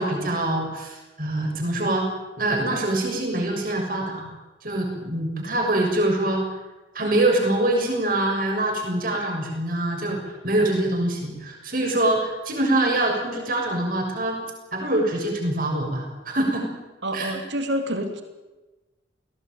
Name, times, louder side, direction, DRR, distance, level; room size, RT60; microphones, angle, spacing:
voice 1, 0.0-2.1 2.4-4.3 4.6-6.5 6.9-14.4 14.7-16.7 17.1-17.4, right 1 dB, 45° right, 1 dB, 6.8 m, -24 dB
voice 2, 17.0-18.2, equal, 70° right, 6 dB, 3.1 m, -27 dB
21.5 x 17.5 x 9.3 m, 1.1 s
head